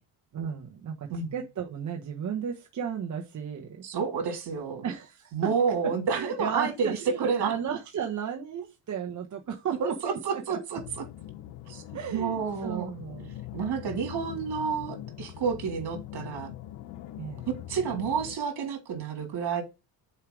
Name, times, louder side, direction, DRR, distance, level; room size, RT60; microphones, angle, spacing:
voice 1, 0.3-3.8 4.8-5.5 6.1-10.6 11.9-13.4 17.2-17.5, right 8 dB, 40° right, 1.1 m, -34 dB
voice 2, 3.8-4.8 5.3-7.5 9.8-11.0 11.7-11.8 12.1-12.9 13.5-16.5 17.5-19.6, right 6 dB, 60° right, 3.3 m, -30 dB
sound 1, 10.8-18.4, left 13 dB, 80° left, 0.8 m, -42 dB
5.6 x 4.9 x 6.2 m
cardioid pair, 120°, 45 cm